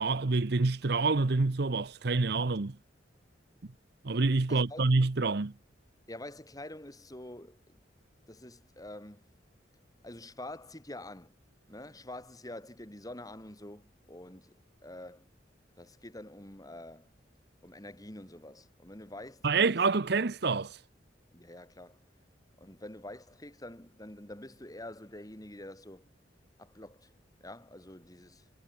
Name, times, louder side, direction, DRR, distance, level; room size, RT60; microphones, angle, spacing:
voice 1, 0.0-2.8 4.0-5.5 19.4-20.8, right 3 dB, 60° right, 0.8 m, -27 dB
voice 2, 4.5-4.9 6.1-7.8 8.3-9.2 10.0-11.3 11.7-15.3 15.8-17.1 17.6-19.7 21.3-22.0 22.6-26.1 26.6-27.1 27.4-28.5, left 1 dB, 20° left, 3.9 m, -46 dB
head